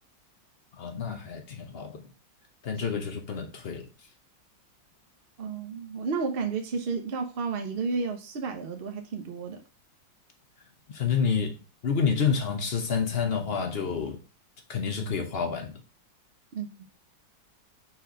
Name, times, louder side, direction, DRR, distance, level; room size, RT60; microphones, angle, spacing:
voice 1, 0.7-2.1 2.6-3.9 10.9-14.2 14.7-15.8, left 6 dB, 50° left, 0.7 m, -29 dB
voice 2, 5.4-9.6 16.5-16.7, right 4 dB, 65° right, 0.5 m, -32 dB
4.4 x 4.3 x 5.0 m
omnidirectional pair, 2.1 m